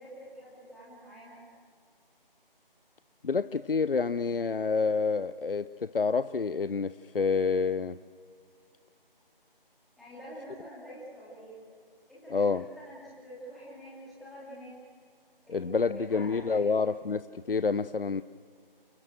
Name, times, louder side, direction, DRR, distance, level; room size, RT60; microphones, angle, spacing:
voice 1, 0.0-1.4 10.0-11.6 12.1-14.8 15.4-16.8, equal, ahead, -9 dB, 2.8 m, -47 dB
voice 2, 3.2-8.0 12.3-12.7 15.5-18.2, left 4 dB, 70° left, 14 dB, 0.7 m, -28 dB
29.0 x 16.0 x 7.8 m, 2.1 s
figure-of-eight pair, 165°, 29 cm